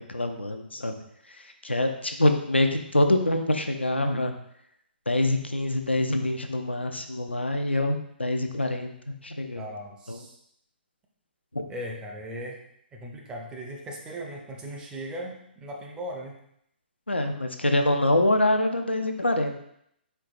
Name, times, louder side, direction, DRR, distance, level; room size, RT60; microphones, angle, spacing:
voice 1, 0.0-4.3 5.1-9.6 10.1-10.2 11.5-11.6 17.1-19.5, left 1 dB, 85° left, 5 dB, 0.5 m, -25 dB
voice 2, 9.6-10.4 11.7-12.6 12.9-16.4, equal, 15° right, 0 dB, 0.5 m, -38 dB
4.5 x 3.8 x 2.5 m, 0.73 s
figure-of-eight pair, 125°, 6 cm